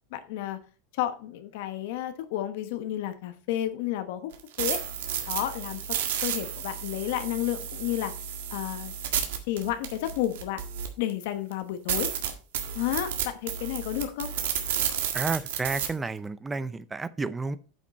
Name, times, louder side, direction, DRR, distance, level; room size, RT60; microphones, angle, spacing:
voice 1, 0.1-0.6 1.0-4.3 4.6-4.8 5.3-5.8 6.2-8.1 8.5-8.9 9.5-10.6 11.0-12.1 12.7-14.3, left 12 dB, 65° left, 1.0 m, -31 dB
sound 1, 4.3-11.1 11.5-11.6 11.9-15.9, right 9 dB, 90° right, 1.8 m, -31 dB
voice 2, 15.1-17.6, right 3 dB, 10° right, 0.5 m, -31 dB
9.0 x 5.9 x 4.1 m
supercardioid pair, 155°, 0 cm